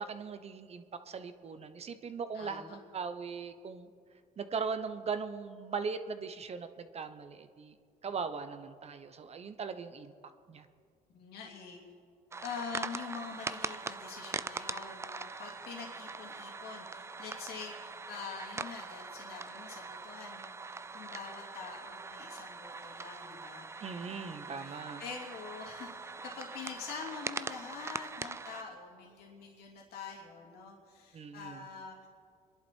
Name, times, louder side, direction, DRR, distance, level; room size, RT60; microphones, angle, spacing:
voice 1, 0.0-3.9 4.4-7.7 8.0-10.1 10.5-10.7 23.8-25.0 31.1-31.6, right 5 dB, 40° right, 10 dB, 1.0 m, -39 dB
voice 2, 2.3-2.8 11.1-11.8 12.4-23.7 24.0-32.1, left 5 dB, 70° left, -1 dB, 2.9 m, -45 dB
sound 1, 12.3-28.6, right 4 dB, 15° right, 0.4 m, -42 dB
26.0 x 11.0 x 4.6 m, 2.2 s
cardioid pair, 110°, 17 cm